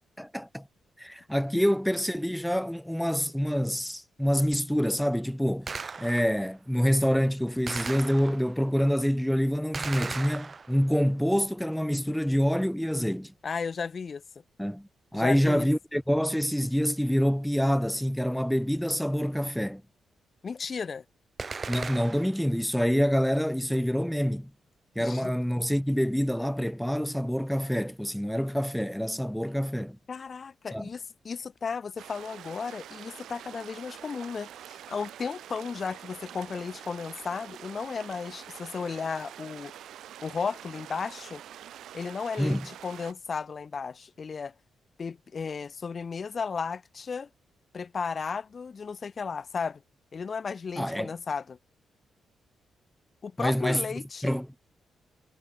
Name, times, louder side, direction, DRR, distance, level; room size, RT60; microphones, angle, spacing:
voice 1, 0.2-0.7 1.0-5.7 6.0-13.3 14.6-19.8 21.7-24.5 25.0-30.0 30.7-30.9 42.4-42.7 50.8-51.1 53.4-53.9 54.2-54.5, equal, ahead, 0.4 m, -26 dB
Gunshot gunfire, 5.7-6.5 7.7-8.6 9.7-11.0 21.4-22.5, right 4 dB, 40° right, 1.9 m, -37 dB
voice 2, 13.4-14.2 15.1-15.7 20.4-21.0 25.0-25.3 30.1-39.7 40.2-41.4 41.9-44.5 45.0-47.3 47.7-49.8 50.1-51.6 53.2-54.3, left 5 dB, 50° left, 0.7 m, -34 dB
sound 1, 32.0-43.1, right 11 dB, 80° right, 7.4 m, -46 dB
supercardioid pair, 65°, 0 cm